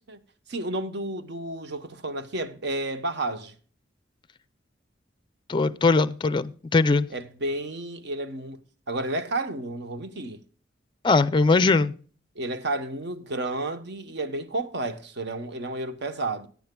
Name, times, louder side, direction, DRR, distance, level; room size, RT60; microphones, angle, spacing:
voice 1, 0.5-3.5 7.1-8.6 8.9-10.4 12.3-16.5, right 2 dB, 60° right, 1.0 m, -31 dB
voice 2, 5.5-7.1 11.0-12.0, left 3 dB, 25° left, 0.4 m, -21 dB
17.5 x 9.4 x 2.2 m
head